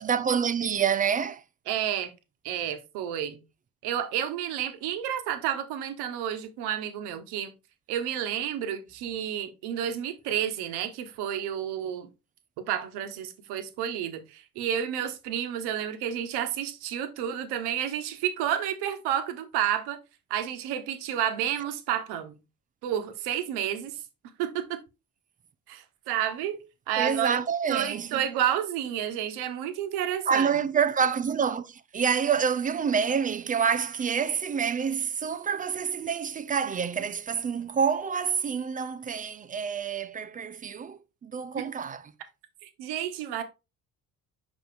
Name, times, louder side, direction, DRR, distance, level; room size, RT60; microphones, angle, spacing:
voice 1, 0.0-1.4 27.0-28.2 30.3-42.0, right 7 dB, 20° right, 0.3 m, -27 dB
voice 2, 1.7-2.1 2.4-3.4 3.8-7.5 7.9-12.1 12.6-20.0 20.3-22.4 22.8-24.0 24.4-24.8 25.7-26.6 26.9-27.4 27.7-30.5 42.6-43.4, right 10 dB, 60° right, 1.1 m, -30 dB
6.0 x 5.2 x 3.3 m
figure-of-eight pair, 50°, 44 cm